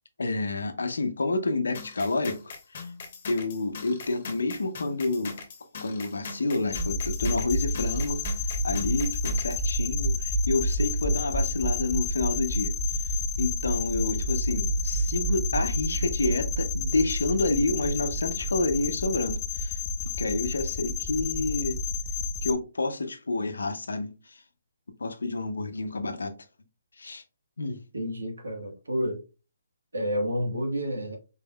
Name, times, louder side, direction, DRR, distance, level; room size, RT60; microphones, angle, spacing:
voice 1, 0.2-2.4 2.7-2.9 3.3-5.4 5.8-19.8 20.2-21.8 22.4-24.4 25.0-26.3 27.0-27.2 27.6-27.8, left 2 dB, 80° left, 0.7 m, -29 dB
sound 1, 1.7-9.6, left 4 dB, 50° left, 1.1 m, -41 dB
sound 2, 6.7-22.5, left 1 dB, 20° left, 0.5 m, -29 dB
voice 2, 27.9-29.2 29.9-31.2, equal, 85° right, 1.4 m, -29 dB
4.4 x 3.5 x 2.3 m
hypercardioid pair, 145°, 0 cm